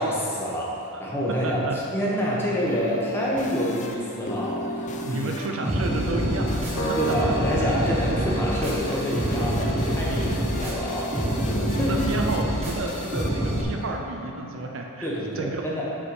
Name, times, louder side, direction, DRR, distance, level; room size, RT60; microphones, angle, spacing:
voice 1, 0.0-5.2 7.0-11.1 11.8-11.9 15.0-15.8, equal, 10° left, -6 dB, 1.2 m, -27 dB
voice 2, 1.3-1.8 5.0-7.3 11.5-15.1 15.4-15.6, right 2 dB, 60° right, 2 dB, 0.6 m, -31 dB
sound 1, 2.3-14.7, left 1 dB, 35° left, 0.5 m, -35 dB
sound 2, 5.6-13.6, right 1 dB, 30° right, 1.4 m, -27 dB
Piano, 6.8-13.3, right 1 dB, 70° left, 1.0 m, -35 dB
6.3 x 4.7 x 6.1 m, 2.8 s
head